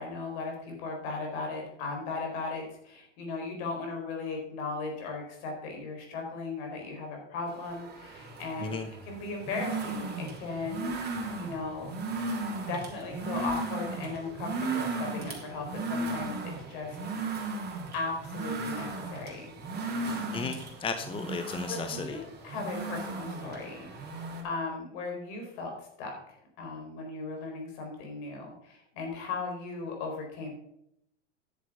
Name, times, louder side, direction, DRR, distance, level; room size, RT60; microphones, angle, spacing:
voice 1, 0.0-8.7 9.1-11.9 12.7-17.0 17.3-17.6 17.9-19.6 21.7-23.9 24.4-26.2 26.6-30.5, left 3 dB, 60° left, 2 dB, 4.5 m, -37 dB
sound 1, 7.5-24.4, right 3 dB, 25° right, 3.1 m, -36 dB
voice 2, 20.3-22.2, left 5 dB, 15° left, 8 dB, 0.8 m, -35 dB
10.0 x 7.4 x 5.5 m, 0.76 s
hypercardioid pair, 105°, 36 cm